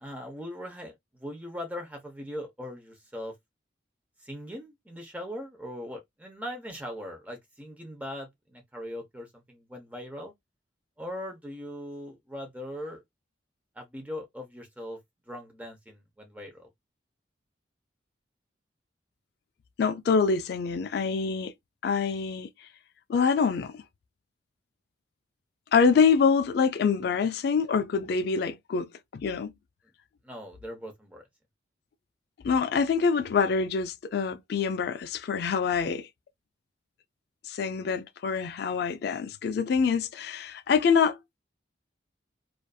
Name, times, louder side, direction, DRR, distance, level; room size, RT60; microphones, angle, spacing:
voice 1, 0.0-3.3 4.2-10.3 11.0-13.0 13.8-15.0 15.3-16.7 30.2-31.2, equal, 10° right, 0.7 m, -40 dB
voice 2, 19.8-21.5 21.8-22.5 23.1-23.8 25.7-29.5 32.4-36.1 37.5-41.2, left 5 dB, 60° left, 0.3 m, -25 dB
2.5 x 2.5 x 2.2 m
head